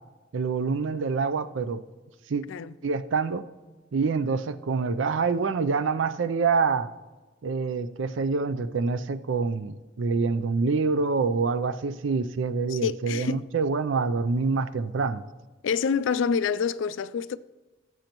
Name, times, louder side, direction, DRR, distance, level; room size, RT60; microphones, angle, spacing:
voice 1, 0.3-1.8 2.3-2.4 2.8-3.4 3.9-6.9 7.4-15.2, right 4 dB, 75° right, 0.5 m, -26 dB
voice 2, 12.7-13.4 15.6-17.4, left 6 dB, 75° left, 0.3 m, -27 dB
17.0 x 7.7 x 3.0 m
head